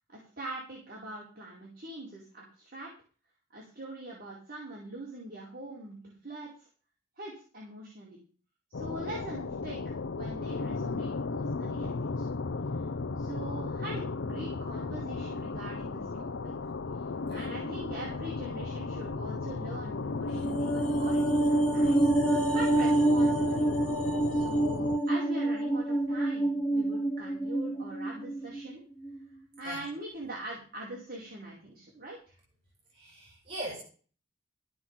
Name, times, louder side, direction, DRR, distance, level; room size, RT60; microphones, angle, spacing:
voice 1, 0.1-2.9 3.5-6.5 7.2-8.2 8.7-12.3 13.2-16.5 17.3-22.1 22.5-23.7 24.3-28.8 29.6-32.3, right 1 dB, 45° right, -3 dB, 4.6 m, -43 dB
sound 1, 8.7-25.0, left 3 dB, 70° left, 0.6 m, -35 dB
sound 2, 20.3-28.7 29.0-29.2, right 1 dB, 5° left, 2.3 m, -27 dB
voice 2, 32.9-33.8, right 1 dB, 30° right, -5 dB, 7.3 m, -40 dB
15.5 x 6.0 x 7.3 m, 0.38 s
head